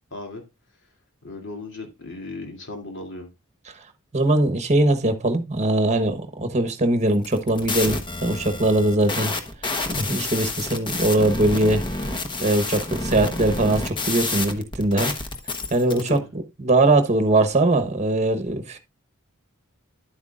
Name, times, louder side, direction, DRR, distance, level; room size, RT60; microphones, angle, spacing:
voice 1, 0.1-0.4 1.2-3.3 15.9-16.3, left 2 dB, 60° left, 2.7 m, -36 dB
voice 2, 4.1-9.3 10.0-12.0 12.4-15.1 15.7-16.2 16.6-18.8, right 2 dB, 35° right, 1.1 m, -21 dB
sound 1, 7.1-16.1, left 3 dB, 25° left, 1.0 m, -29 dB
10.5 x 8.1 x 2.4 m
head